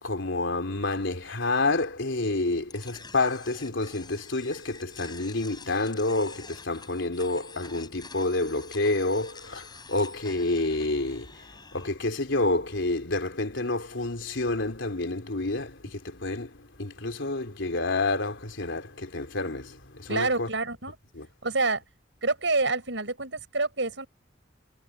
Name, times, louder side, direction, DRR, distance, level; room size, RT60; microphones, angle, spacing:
voice 1, 0.0-11.4 11.7-20.5 21.1-21.3, left 2 dB, 90° left, 3.4 m, -29 dB
sound 1, 2.7-11.9, left 4 dB, 25° left, 5.6 m, -47 dB
voice 2, 20.1-21.0 21.4-21.8 22.2-24.1, right 3 dB, 75° right, 5.9 m, -27 dB
head